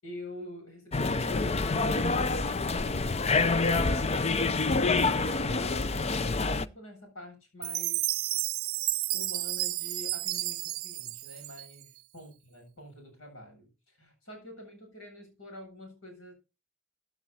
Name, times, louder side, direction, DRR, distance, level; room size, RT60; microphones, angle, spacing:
voice 1, 0.0-3.1 3.7-8.2 9.1-16.3, left 1 dB, 75° left, 7.9 m, -47 dB
sound 1, 0.9-6.7, left 3 dB, 30° left, 0.5 m, -27 dB
Chime, 7.6-12.0, right 18 dB, 85° right, 0.5 m, -32 dB
15.5 x 9.1 x 4.2 m
head